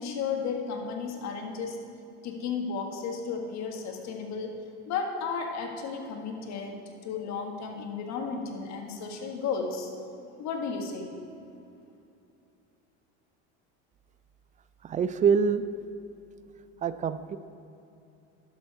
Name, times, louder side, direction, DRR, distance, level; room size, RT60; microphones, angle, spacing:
voice 1, 0.0-1.8 2.2-6.7 7.0-10.0 10.4-11.1, left 5 dB, 55° left, 3 dB, 1.6 m, -33 dB
voice 2, 14.9-15.6 16.8-17.4, right 6 dB, 25° right, 13 dB, 0.3 m, -25 dB
11.0 x 7.2 x 4.7 m, 2.7 s
supercardioid pair, 105°, 34 cm